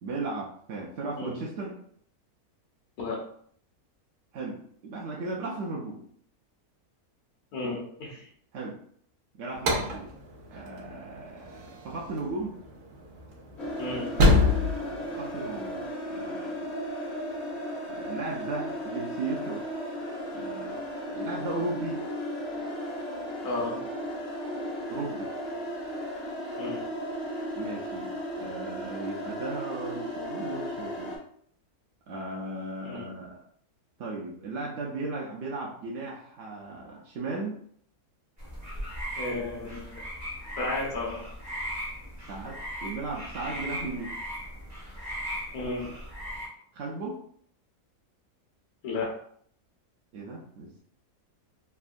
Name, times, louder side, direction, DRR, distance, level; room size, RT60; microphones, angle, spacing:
voice 1, 0.0-1.8 4.3-6.0 8.5-8.8 9.4-10.1 10.5-12.5 15.1-15.8 16.1-16.7 17.9-19.6 20.3-20.8 21.1-22.0 24.9-25.3 27.5-28.1 28.4-31.1 32.1-33.4 34.0-37.6 42.3-44.1 46.7-47.2 50.1-50.8, right 3 dB, 65° right, -3 dB, 0.7 m, -36 dB
voice 2, 7.5-8.2 13.8-14.1 23.4-23.8 26.6-26.8 32.8-33.1 39.2-39.9 40.6-41.2 45.5-45.9 48.8-49.1, left 2 dB, 75° left, -2 dB, 1.3 m, -33 dB
sound 1, 9.5-15.9, left 2 dB, 85° right, 1.2 m, -27 dB
sound 2, 13.6-31.2, equal, 40° left, 0.6 m, -35 dB
sound 3, 38.4-46.5, equal, 20° right, 0.5 m, -38 dB
3.4 x 2.1 x 2.4 m, 0.63 s
omnidirectional pair, 1.6 m